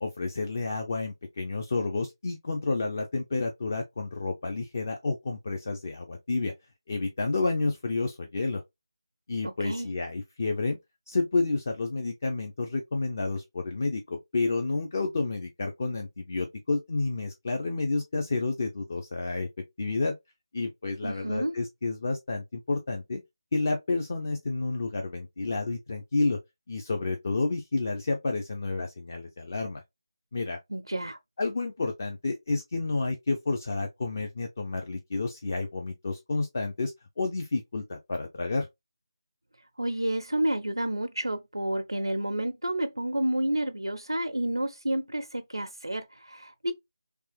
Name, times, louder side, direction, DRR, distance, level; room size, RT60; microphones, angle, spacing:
voice 1, 0.0-6.5 6.9-8.6 9.3-10.8 11.1-19.5 19.8-20.1 20.5-23.2 23.5-26.4 26.7-29.8 30.3-30.6 31.4-38.7, left 3 dB, 40° left, 0.5 m, -30 dB
voice 2, 9.4-9.9 21.0-21.5 30.7-31.2 39.8-46.7, right 1 dB, 80° right, 0.5 m, -30 dB
3.3 x 2.9 x 3.2 m
figure-of-eight pair, 160°, 2 cm